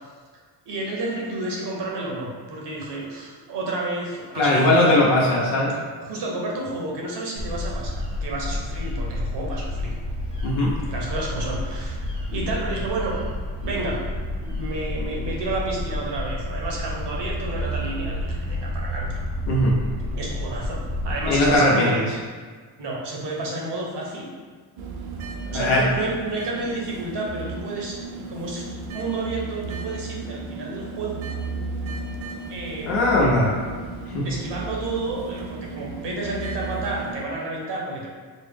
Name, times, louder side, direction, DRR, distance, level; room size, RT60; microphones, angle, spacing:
voice 1, 0.7-5.0 6.0-9.9 10.6-12.0 12.3-13.1 13.6-14.0 14.4-19.1 20.1-22.0 22.8-24.3 25.4-28.0 28.3-28.6 28.9-31.2 32.5-32.9 34.2-38.1, right 2 dB, 60° right, -2 dB, 1.0 m, -30 dB
voice 2, 4.3-5.7 10.4-10.7 19.5-19.7 21.2-22.0 25.5-25.8 32.8-33.5 34.1-34.3, left 1 dB, 80° left, -5 dB, 1.0 m, -19 dB
sound 1, 7.4-21.6, left 1 dB, 10° right, 0.8 m, -30 dB
sound 2, 24.8-37.2, right 3 dB, 80° right, 0.6 m, -34 dB
4.2 x 2.0 x 3.4 m, 1.5 s
cardioid pair, 90°, 48 cm